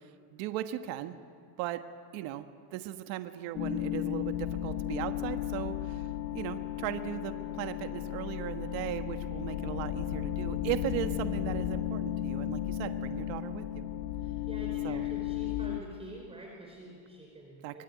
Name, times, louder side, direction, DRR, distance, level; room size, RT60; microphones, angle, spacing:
voice 1, 0.3-1.1 1.6-1.8 2.1-2.4 2.7-5.8 6.3-13.8 14.8-15.1 17.6-17.8, right 13 dB, 75° right, 8 dB, 1.5 m, -37 dB
sound 1, 3.5-15.8, left 12 dB, 75° left, 1.8 m, -34 dB
voice 2, 14.2-17.8, right 2 dB, 15° right, -1 dB, 4.5 m, -47 dB
25.0 x 22.0 x 9.6 m, 2.2 s
cardioid pair, 150°, 45 cm